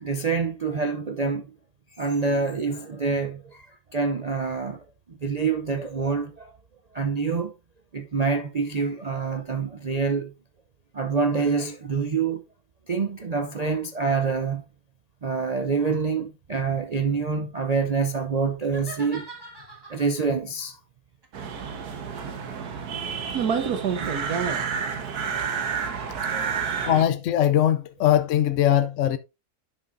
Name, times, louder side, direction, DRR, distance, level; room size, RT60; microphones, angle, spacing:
voice 1, 0.0-1.5 2.0-3.7 3.9-6.5 6.9-7.5 7.9-10.3 10.9-12.4 12.9-14.6 15.2-19.3 19.9-20.8 24.0-24.2 26.2-26.9, right 5 dB, 55° right, 0.4 m, -26 dB
sound 1, 18.6-20.3 21.2-24.3, right 2 dB, 15° right, 1.4 m, -45 dB
sound 2, 21.3-27.0, right 6 dB, 85° right, 1.7 m, -28 dB
voice 2, 26.9-29.2, left 11 dB, 65° left, 0.8 m, -21 dB
11.0 x 6.0 x 2.6 m
omnidirectional pair, 1.6 m